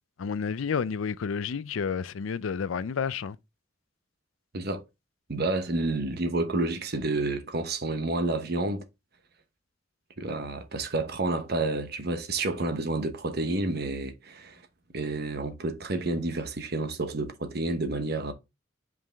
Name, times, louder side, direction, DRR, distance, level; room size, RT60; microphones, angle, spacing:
voice 1, 0.2-3.4, left 6 dB, 85° left, 0.5 m, -30 dB
voice 2, 5.3-8.8 10.2-14.6 14.9-18.3, right 2 dB, 55° right, 1.0 m, -29 dB
5.4 x 5.3 x 3.5 m
head